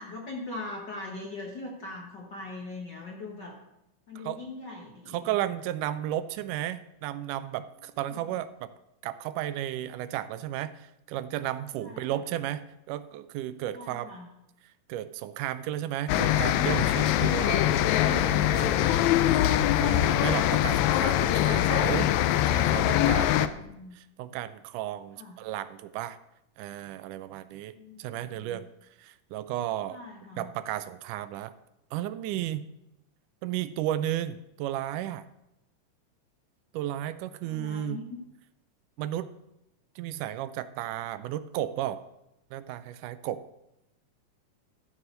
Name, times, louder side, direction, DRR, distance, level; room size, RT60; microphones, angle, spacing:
voice 1, 0.0-3.6 4.1-5.3 8.1-8.4 11.8-12.2 13.7-14.3 23.3-24.0 25.2-25.3 27.8-28.6 29.9-30.5 37.4-38.2, left 2 dB, 55° left, -1 dB, 1.2 m, -42 dB
voice 2, 5.1-8.7 9.0-14.1 14.9-17.8 18.1-23.5 23.9-26.2 26.6-28.7 29.0-30.0 30.4-31.5 31.9-32.7 33.4-35.3 36.7-38.1 39.0-39.3 40.0-42.0 42.5-43.4, right 12 dB, 80° right, 14 dB, 2.0 m, -34 dB
sound 1, 16.1-23.5, left 12 dB, 85° left, 1.6 m, -23 dB
14.0 x 4.8 x 6.5 m, 0.87 s
omnidirectional pair, 3.8 m